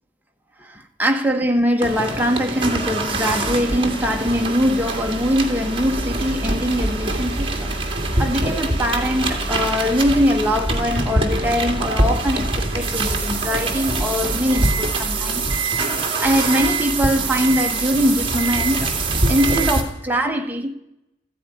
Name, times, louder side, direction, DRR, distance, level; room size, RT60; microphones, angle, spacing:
voice 1, 0.6-15.5 16.2-18.9 19.3-20.7, equal, 10° right, 1.3 m, -22 dB
sound 1, 1.8-19.8, right 2 dB, 30° right, 2.3 m, -23 dB
14.5 x 10.0 x 9.9 m
head